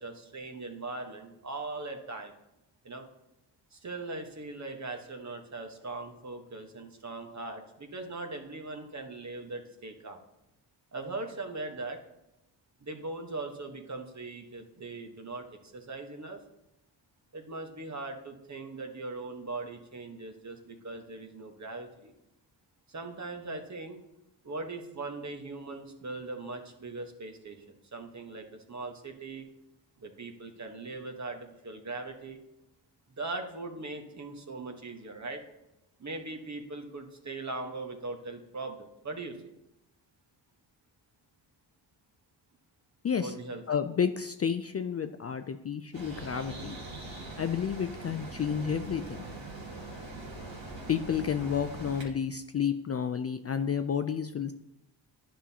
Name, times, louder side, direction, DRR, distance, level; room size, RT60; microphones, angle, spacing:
voice 1, 0.0-2.3 2.8-3.1 3.7-10.2 10.9-12.0 12.8-16.4 17.3-22.1 22.9-24.0 24.4-29.5 30.0-32.4 33.2-35.4 36.0-39.5 43.1-43.6, right 3 dB, 35° right, 4 dB, 1.2 m, -40 dB
voice 2, 43.0-43.3 43.7-46.8 47.4-49.2 50.9-54.5, left 7 dB, 35° left, 9 dB, 0.4 m, -31 dB
sound 1, 45.9-52.0, right 2 dB, 75° right, 2.2 m, -42 dB
10.0 x 5.6 x 2.8 m, 0.89 s
cardioid pair, 60°, 46 cm